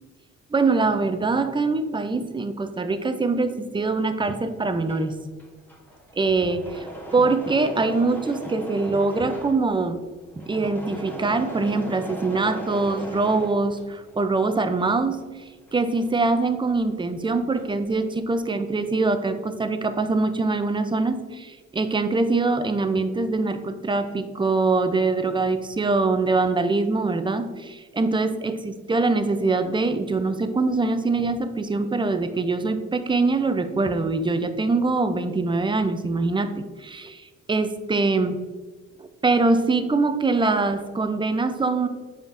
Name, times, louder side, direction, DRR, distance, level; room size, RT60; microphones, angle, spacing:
voice 1, 0.5-5.2 6.2-6.9 7.1-10.0 10.3-15.2 15.7-38.4 39.0-41.9, right 3 dB, 15° right, 9 dB, 0.5 m, -23 dB
Engine / Mechanisms, 4.9-14.2 14.6-16.9 17.2-17.9, equal, 5° left, 1.0 m, -38 dB
7.2 x 5.1 x 2.6 m, 1.3 s
cardioid pair, 90°, 30 cm